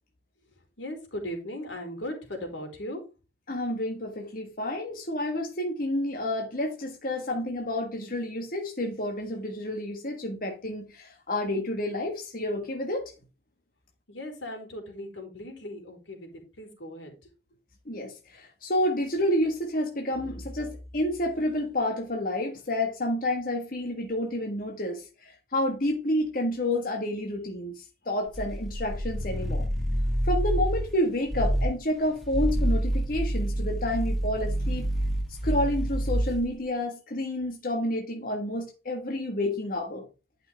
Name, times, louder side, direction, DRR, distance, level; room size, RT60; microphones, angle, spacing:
voice 1, 0.8-3.0 14.1-17.1, left 1 dB, 85° left, 4.1 m, -38 dB
voice 2, 3.5-13.1 17.8-29.7 30.2-34.9 35.3-40.0, left 1 dB, 50° left, 1.6 m, -29 dB
sound 1, 28.3-30.9 31.3-31.8 32.2-36.5, right 1 dB, ahead, 1.8 m, -27 dB
11.0 x 6.0 x 3.4 m
head